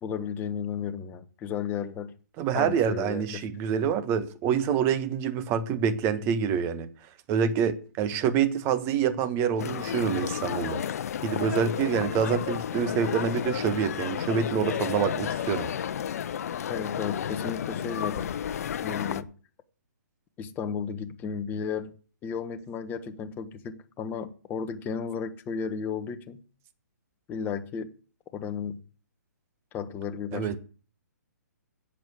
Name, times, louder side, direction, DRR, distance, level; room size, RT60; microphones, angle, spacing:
voice 1, 0.0-2.1 2.5-3.4 16.7-18.3 18.8-19.3 20.4-21.9 22.2-26.4 27.3-27.9 28.3-28.8 29.7-30.6, left 7 dB, 20° left, 1.2 m, -34 dB
voice 2, 2.4-6.9 7.3-10.8 11.2-15.7 30.3-30.6, right 7 dB, 25° right, 1.4 m, -26 dB
sound 1, 9.6-19.2, left 9 dB, 55° left, 0.8 m, -32 dB
11.0 x 7.8 x 8.2 m
hypercardioid pair, 140°, 10 cm